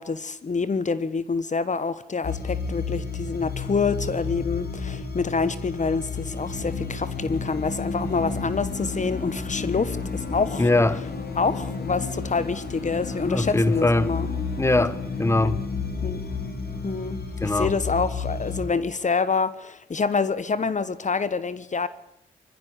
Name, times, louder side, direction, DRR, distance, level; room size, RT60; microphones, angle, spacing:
voice 1, 0.0-10.7 11.4-14.3 16.0-16.2 16.8-21.9, left 4 dB, 45° left, 16 dB, 1.3 m, -27 dB
sound 1, 2.2-18.6, left 4 dB, 65° left, 4.4 m, -31 dB
voice 2, 10.6-11.0 13.3-14.1 14.6-15.6 17.4-17.7, left 2 dB, 15° left, 17 dB, 1.3 m, -22 dB
21.0 x 15.0 x 9.7 m, 0.73 s
supercardioid pair, 45°, 17 cm